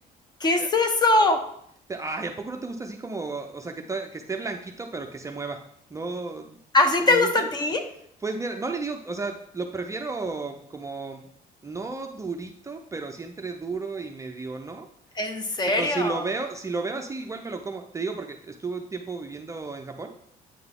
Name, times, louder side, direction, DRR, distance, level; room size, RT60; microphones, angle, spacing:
voice 1, 0.4-1.4 6.7-7.8 15.2-16.2, left 2 dB, 25° left, 7 dB, 0.9 m, -21 dB
voice 2, 1.9-5.6 5.9-6.6 7.1-7.5 8.2-11.3 11.6-14.9 15.7-20.1, right 3 dB, 20° right, 3 dB, 0.5 m, -33 dB
8.6 x 3.9 x 3.7 m, 0.69 s
cardioid pair, 110°, 17 cm